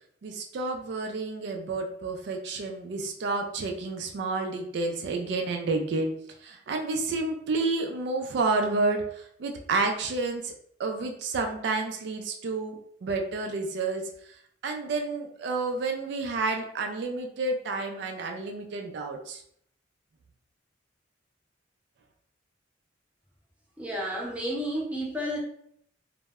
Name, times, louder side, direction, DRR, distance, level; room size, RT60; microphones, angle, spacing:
voice 1, 0.2-6.1 6.4-10.5 10.8-12.7 13.0-14.0 14.6-19.4, right 3 dB, 60° right, 3 dB, 0.3 m, -30 dB
voice 2, 23.8-25.4, equal, 5° right, -4 dB, 0.6 m, -31 dB
2.1 x 2.0 x 3.4 m, 0.67 s
head